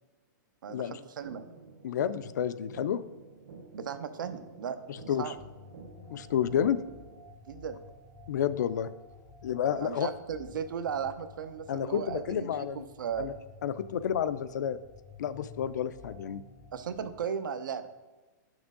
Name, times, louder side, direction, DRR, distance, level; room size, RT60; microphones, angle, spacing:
voice 1, 0.6-1.4 3.7-4.8 5.2-5.3 7.5-7.8 9.7-12.7 13.0-13.3 16.7-17.9, right 7 dB, 80° right, 11 dB, 0.7 m, -36 dB
sound 1, 1.2-7.2, right 4 dB, 65° right, 1.5 m, -50 dB
voice 2, 1.8-3.0 4.9-5.3 6.1-6.8 8.3-8.9 9.4-10.1 11.7-12.9 13.2-13.3 13.6-14.8 15.2-16.4, left 9 dB, 60° left, 14 dB, 0.4 m, -30 dB
sound 2, 5.4-17.2, left 4 dB, 5° left, 0.5 m, -52 dB
10.0 x 6.2 x 3.7 m, 1.2 s
hypercardioid pair, 175°, 11 cm